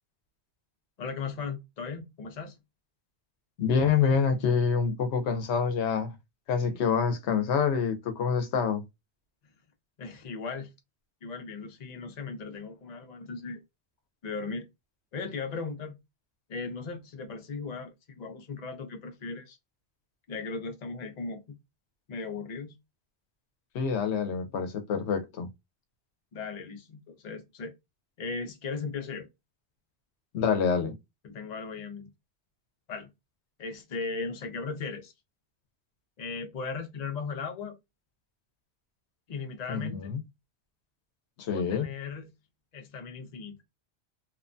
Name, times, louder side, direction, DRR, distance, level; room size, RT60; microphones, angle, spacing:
voice 1, 1.0-2.6 10.0-10.7 11.2-13.6 14.2-14.7 15.1-15.9 16.5-19.6 20.3-21.4 22.1-22.8 26.3-27.7 28.2-29.3 31.2-32.1 32.9-33.1 33.6-35.1 36.2-37.7 39.3-40.1 41.5-42.3 42.7-43.6, left 4 dB, 45° left, 0.7 m, -37 dB
voice 2, 3.6-6.1 6.5-8.8 23.7-25.5 30.3-30.9 39.7-40.2 41.4-41.9, left 6 dB, 85° left, 0.9 m, -26 dB
2.8 x 2.1 x 2.5 m
omnidirectional pair, 1.1 m